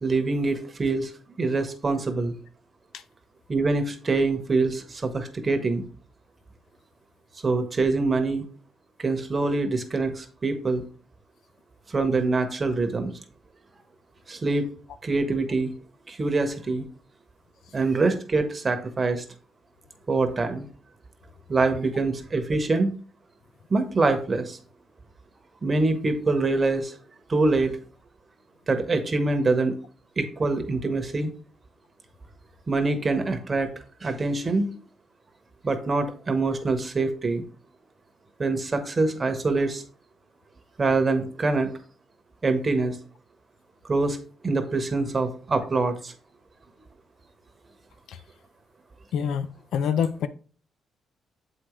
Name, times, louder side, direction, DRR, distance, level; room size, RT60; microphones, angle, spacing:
voice 1, 0.0-1.1 1.4-2.3 3.5-5.8 7.4-8.5 9.0-10.8 11.9-13.1 14.3-14.6 15.0-15.7 16.1-16.8 17.7-19.2 20.1-20.7 21.5-22.9 23.7-24.6 25.6-26.9 27.3-27.8 28.7-29.8 30.2-31.3 32.7-33.7 34.0-34.7 35.6-37.4 38.4-39.8 40.8-41.7 42.4-43.0 43.9-44.2 44.4-46.1, right 3 dB, 30° right, 1.1 m, -24 dB
voice 2, 49.1-50.3, left 7 dB, 75° left, 0.5 m, -26 dB
7.3 x 4.9 x 3.2 m
cardioid pair, 90°, 0 cm